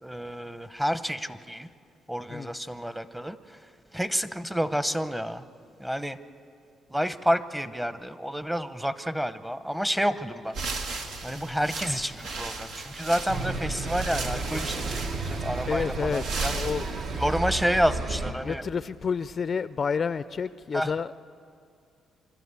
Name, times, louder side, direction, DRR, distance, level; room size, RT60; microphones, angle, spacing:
voice 1, 0.0-1.7 2.1-3.6 3.9-5.4 5.8-6.2 6.9-11.0 11.2-16.5 17.1-18.6 20.7-20.9, equal, 5° right, 12 dB, 0.8 m, -29 dB
sound 1, 10.5-17.4, right 3 dB, 85° right, 1.5 m, -36 dB
sound 2, 13.3-18.3, right 3 dB, 65° right, 1.4 m, -32 dB
voice 2, 15.7-16.9 18.4-21.1, left 6 dB, 45° left, 15 dB, 0.4 m, -29 dB
26.0 x 12.5 x 8.3 m, 2.4 s
cardioid pair, 90°, 0 cm